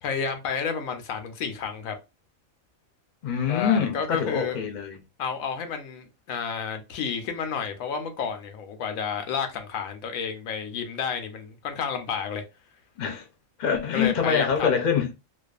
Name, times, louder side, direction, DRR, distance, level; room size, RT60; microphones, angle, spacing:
voice 1, 0.0-2.0 3.5-4.6 5.2-12.4 13.9-14.7, left 6 dB, 85° left, 1.0 m, -31 dB
voice 2, 3.2-5.0 13.0-13.3 13.6-15.1, left 7 dB, 45° left, 0.6 m, -25 dB
2.5 x 2.3 x 2.3 m
omnidirectional pair, 1.4 m